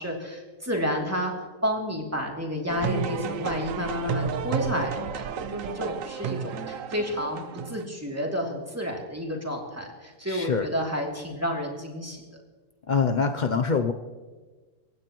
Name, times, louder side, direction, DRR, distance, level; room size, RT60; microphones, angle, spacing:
voice 1, 0.0-1.3 1.6-12.2, equal, 10° right, -1 dB, 2.8 m, -30 dB
sound 1, 2.7-7.8, right 6 dB, 60° right, 1.0 m, -32 dB
voice 2, 10.3-10.7 12.9-13.9, left 5 dB, 80° left, 6 dB, 0.4 m, -24 dB
27.5 x 15.5 x 3.1 m, 1.4 s
omnidirectional pair, 1.8 m